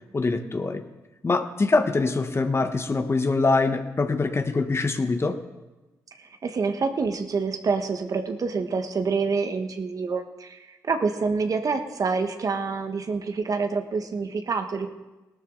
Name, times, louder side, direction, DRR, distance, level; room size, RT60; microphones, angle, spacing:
voice 1, 0.1-0.8 1.2-5.4, left 3 dB, 35° left, 8 dB, 1.3 m, -24 dB
voice 2, 6.4-14.9, right 4 dB, 50° right, 6 dB, 1.4 m, -27 dB
18.5 x 12.5 x 3.9 m, 1.1 s
supercardioid pair, 50°, 8 cm